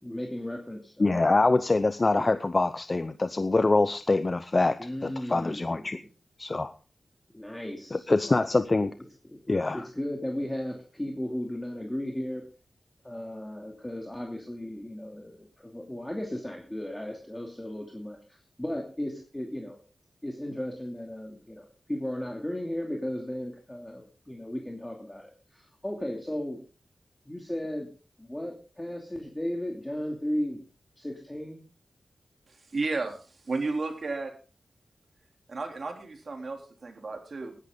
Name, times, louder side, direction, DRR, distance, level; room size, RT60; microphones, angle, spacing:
voice 1, 0.0-1.2 2.2-2.4 4.8-5.9 7.3-8.4 9.2-12.4 13.0-19.8 20.2-26.6 27.3-27.9 28.2-30.6 31.0-31.6, left 1 dB, 15° left, 1 dB, 2.6 m, -35 dB
voice 2, 1.0-6.0 6.4-6.7 7.9-8.9 9.5-9.8, left 3 dB, 35° left, 11 dB, 0.7 m, -25 dB
voice 3, 32.5-34.3 35.5-37.6, right 3 dB, 55° right, 4 dB, 3.4 m, -33 dB
19.0 x 11.0 x 3.8 m, 0.36 s
wide cardioid pair, 85°, 0 cm